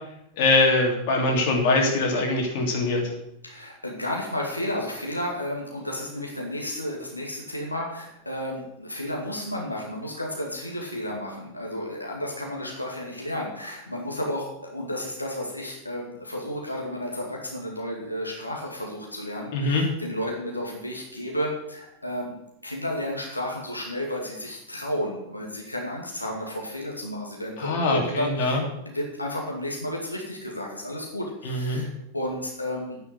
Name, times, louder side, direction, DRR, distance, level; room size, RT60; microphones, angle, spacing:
voice 1, 0.4-3.0 19.5-19.8 27.6-28.6 31.4-31.8, left 2 dB, 50° left, 1 dB, 3.1 m, -23 dB
voice 2, 3.4-22.3 22.6-28.6 28.9-33.0, left 1 dB, 85° left, -1 dB, 2.3 m, -32 dB
9.5 x 8.1 x 8.2 m, 0.81 s
figure-of-eight pair, 90°, 0 cm